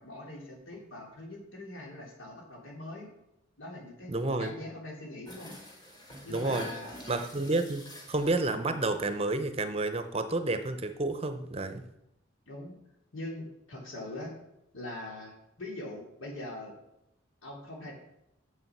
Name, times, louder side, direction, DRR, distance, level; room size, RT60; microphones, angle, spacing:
voice 1, 0.0-3.1 3.6-4.1 4.4-5.5 6.2-7.0 12.5-12.8 13.1-14.3 14.7-16.7 17.4-17.9, left 1 dB, 85° left, -1 dB, 2.9 m, -42 dB
voice 2, 4.1-4.5 6.3-6.7 7.1-11.8, right 2 dB, 30° right, 9 dB, 0.6 m, -30 dB
sound 1, 5.3-8.8 9.1-9.4 9.7-9.8, left 1 dB, 20° left, 1.5 m, -46 dB
7.0 x 7.0 x 5.9 m, 0.83 s
head